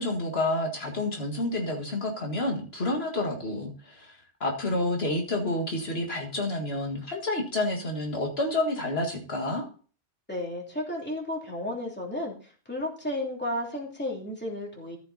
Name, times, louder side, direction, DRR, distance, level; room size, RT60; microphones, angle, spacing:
voice 1, 0.0-9.7, left 2 dB, 70° left, 1 dB, 2.1 m, -29 dB
voice 2, 10.3-15.0, left 1 dB, 10° left, -2 dB, 3.0 m, -33 dB
14.0 x 5.8 x 4.1 m, 0.40 s
omnidirectional pair, 1.1 m